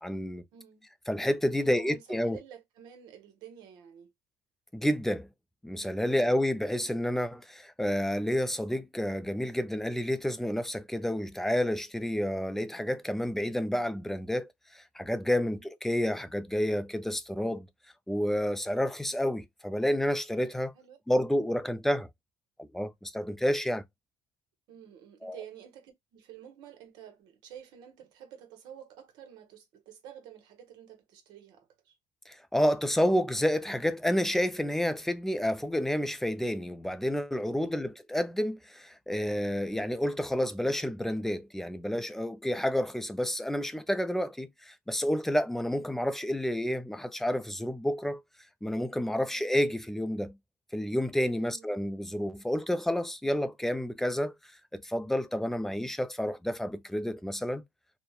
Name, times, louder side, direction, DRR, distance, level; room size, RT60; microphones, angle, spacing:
voice 1, 0.0-0.4 1.1-2.4 4.7-5.3 5.6-17.7 18.1-20.7 21.1-22.1 22.6-23.8 25.2-25.4 32.3-48.2 48.6-50.4 50.7-54.3 54.7-57.6, equal, 5° left, 0.3 m, -30 dB
voice 2, 0.5-0.9 1.6-4.1 6.0-6.5 15.4-15.7 20.7-21.0 24.7-32.0 37.6-38.0 49.2-49.5 51.4-51.9, right 9 dB, 75° right, 0.9 m, -51 dB
2.7 x 2.0 x 2.3 m
supercardioid pair, 95°, 7 cm